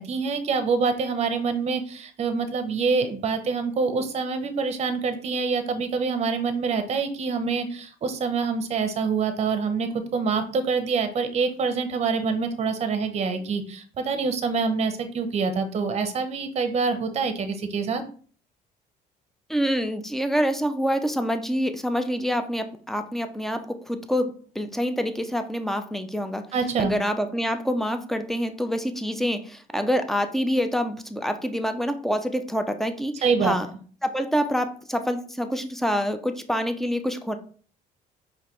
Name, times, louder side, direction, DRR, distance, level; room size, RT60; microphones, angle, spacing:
voice 1, 0.0-18.0 26.5-26.9 33.2-33.6, right 5 dB, 40° right, 9 dB, 0.7 m, -26 dB
voice 2, 19.5-26.5 26.8-33.7 34.0-37.4, equal, ahead, 8 dB, 0.5 m, -26 dB
4.8 x 3.1 x 3.0 m, 0.44 s
cardioid pair, 110°, 17 cm